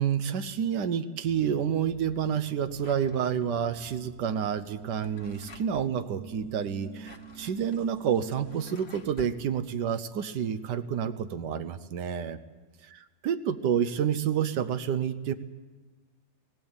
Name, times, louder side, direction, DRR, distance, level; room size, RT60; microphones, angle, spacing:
voice 1, 0.0-12.4 13.2-15.3, right 8 dB, 85° right, 10 dB, 1.5 m, -29 dB
sound 1, 1.2-8.7, right 6 dB, 50° right, 0.9 m, -48 dB
Drawer open or close, 2.8-3.8 4.8-5.9 6.8-9.4, left 2 dB, 40° left, 1.4 m, -51 dB
19.5 x 17.5 x 8.8 m, 1.3 s
omnidirectional pair, 1.8 m